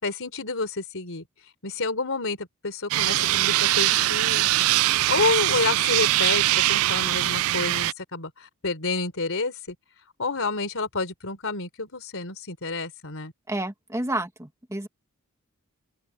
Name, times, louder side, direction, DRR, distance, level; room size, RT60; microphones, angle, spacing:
voice 1, 0.0-1.2 1.6-4.5 5.0-9.8 10.2-13.3, left 3 dB, 65° left, 3.9 m, -29 dB
sound 1, 2.9-7.9, right 16 dB, 70° right, 0.3 m, -22 dB
voice 2, 13.5-14.9, right 1 dB, 15° right, 2.0 m, -30 dB
open air
head